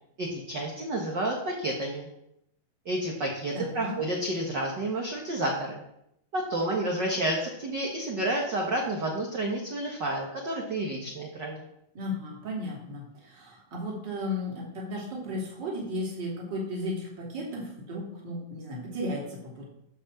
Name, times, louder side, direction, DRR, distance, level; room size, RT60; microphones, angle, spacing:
voice 1, 0.2-2.1 2.8-5.8 6.3-11.6, right 1 dB, 50° right, -1 dB, 1.4 m, -30 dB
voice 2, 3.5-3.9 11.9-19.7, left 1 dB, 35° right, -3 dB, 3.3 m, -35 dB
11.5 x 5.5 x 7.3 m, 0.80 s
omnidirectional pair, 3.9 m